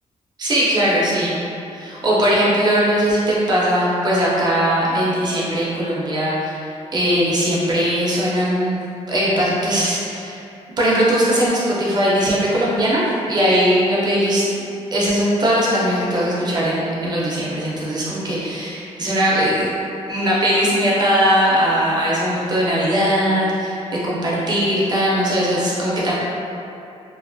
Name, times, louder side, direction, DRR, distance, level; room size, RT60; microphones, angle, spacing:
voice 1, 0.4-1.3 1.7-8.8 9.1-10.4 10.8-14.4 14.9-19.7 20.1-26.1, equal, 35° right, -6 dB, 0.6 m, -19 dB
2.5 x 2.3 x 2.5 m, 2.7 s
cardioid pair, 120°, 12 cm